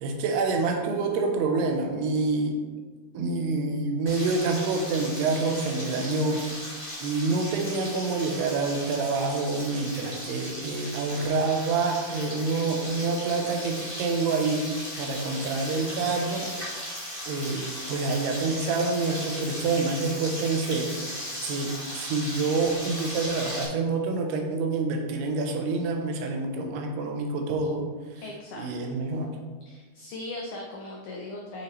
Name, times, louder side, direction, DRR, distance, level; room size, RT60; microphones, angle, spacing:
voice 1, 0.0-2.6 3.1-6.4 7.0-14.6 15.0-16.5 17.3-20.9 21.4-27.9 28.6-29.3, right 3 dB, 85° right, 3 dB, 2.9 m, -27 dB
Frying (food), 4.1-23.6, equal, 25° left, 0.7 m, -37 dB
voice 2, 28.2-28.7 29.7-31.6, left 2 dB, 90° left, -1 dB, 1.7 m, -38 dB
8.6 x 5.8 x 3.1 m, 1.4 s
omnidirectional pair, 4.6 m